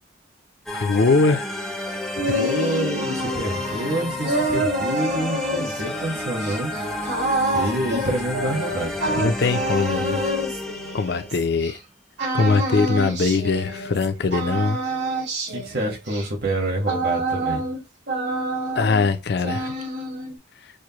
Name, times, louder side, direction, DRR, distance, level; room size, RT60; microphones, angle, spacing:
voice 1, 0.7-1.5 2.3-2.4 9.2-10.2 10.9-11.8 12.3-14.8 18.8-19.7, left 4 dB, 60° left, 0.5 m, -21 dB
sound 1, 0.7-11.4, left 2 dB, ahead, 0.5 m, -31 dB
sound 2, 1.9-11.7 12.2-14.1 14.3-17.8 18.1-19.1 19.4-20.4, right 1 dB, 70° right, 2.5 m, -27 dB
voice 2, 2.2-6.7 7.5-9.2 15.5-17.7, right 1 dB, 55° right, 1.3 m, -27 dB
6.3 x 2.1 x 2.9 m
head